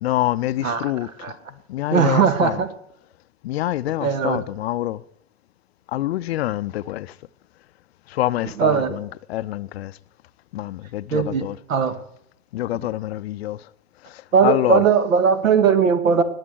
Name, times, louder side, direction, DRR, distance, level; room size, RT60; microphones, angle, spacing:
voice 1, 0.0-1.4 1.7-2.6 3.4-5.0 5.9-7.1 8.1-10.0 10.5-11.6 12.5-13.6 14.0-14.8, left 15 dB, 50° left, 0.6 m, -26 dB
voice 2, 1.9-2.7 4.0-4.4 8.4-9.0 11.1-11.4 11.7-11.9 12.8-12.9 14.3-16.2, right 6 dB, 70° right, 1.9 m, -19 dB
19.5 x 7.5 x 7.8 m
figure-of-eight pair, 100°, 42 cm